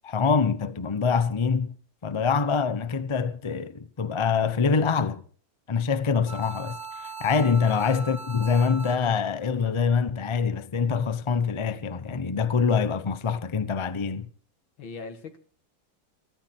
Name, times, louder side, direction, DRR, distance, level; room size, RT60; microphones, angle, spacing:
voice 1, 0.0-1.7 2.0-5.2 5.7-14.3, left 5 dB, 40° left, 0.4 m, -25 dB
sound 1, 6.3-9.3, right 4 dB, 10° right, 1.6 m, -39 dB
voice 2, 7.5-7.9 14.8-15.4, left 4 dB, 90° left, 2.6 m, -40 dB
21.5 x 13.0 x 4.4 m
omnidirectional pair, 2.1 m